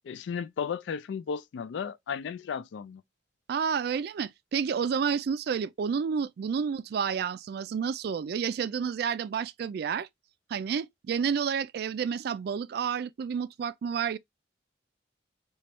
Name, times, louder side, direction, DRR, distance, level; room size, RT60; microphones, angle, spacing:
voice 1, 0.0-3.0, left 6 dB, 90° left, 0.3 m, -34 dB
voice 2, 3.5-10.1 10.5-14.2, right 6 dB, 60° right, 0.3 m, -30 dB
4.3 x 2.3 x 3.0 m
head